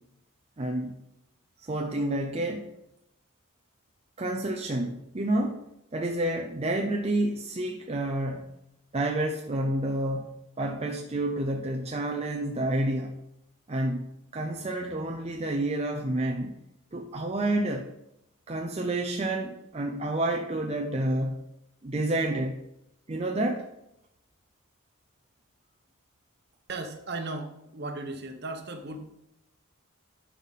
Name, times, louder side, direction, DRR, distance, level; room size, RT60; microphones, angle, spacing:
voice 1, 0.6-1.0 1.6-2.7 4.2-5.6 5.9-8.6 8.9-13.2 13.7-16.6 16.9-17.9 18.5-21.4 21.8-22.6 23.1-23.7, right 1 dB, 30° right, 3 dB, 0.6 m, -29 dB
voice 2, 26.7-29.1, right 2 dB, 50° right, 6 dB, 1.1 m, -36 dB
11.0 x 5.8 x 4.1 m, 0.85 s
head